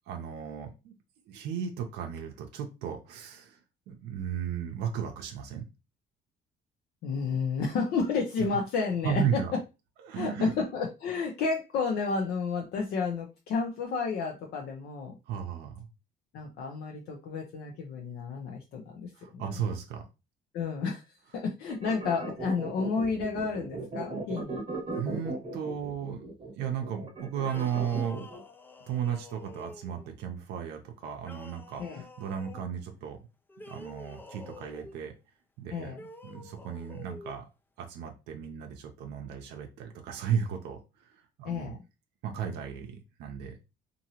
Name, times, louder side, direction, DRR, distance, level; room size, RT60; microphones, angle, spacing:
voice 1, 0.1-0.9 1.3-3.6 3.9-5.6 9.0-9.5 10.0-10.5 15.3-15.9 19.2-20.0 24.9-26.2 26.6-28.3 28.9-33.2 33.7-35.1 35.6-35.9 36.2-37.4 37.8-41.1 41.4-41.8 42.2-43.6, right 8 dB, 85° right, 3 dB, 0.6 m, -35 dB
voice 2, 7.0-9.6 10.1-15.2 16.3-19.4 20.5-21.0 21.3-24.6 31.8-32.0 35.7-36.1 41.4-41.8, left 4 dB, 70° left, 1 dB, 0.6 m, -31 dB
sound 1, 21.7-28.4, right 3 dB, 35° right, 0.9 m, -37 dB
sound 2, 27.4-30.1 31.2-32.7 33.5-35.0 35.9-37.4, left 1 dB, 10° left, 0.3 m, -48 dB
2.7 x 2.6 x 2.8 m, 0.28 s
cardioid pair, 110°, 17 cm